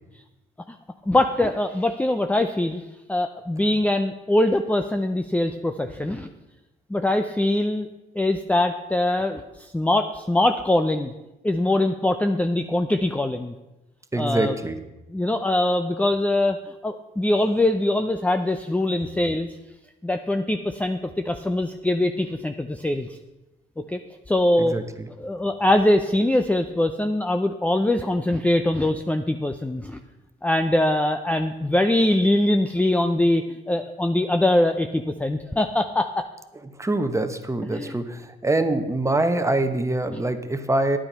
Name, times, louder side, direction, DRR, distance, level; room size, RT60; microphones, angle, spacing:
voice 1, 1.1-2.8 3.1-6.3 6.9-7.9 8.2-11.1 11.4-13.5 14.2-14.5 15.1-16.6 16.8-19.5 20.0-21.0 21.3-23.1 23.9-24.0 24.3-24.8 25.2-30.0 30.4-36.3 37.7-37.9 40.1-40.2, left 1 dB, 5° left, 7 dB, 0.6 m, -22 dB
voice 2, 14.1-14.8 24.6-24.8 36.8-41.0, right 2 dB, 15° right, 8 dB, 1.1 m, -24 dB
10.5 x 8.8 x 5.5 m, 1.0 s
cardioid pair, 90°, 20 cm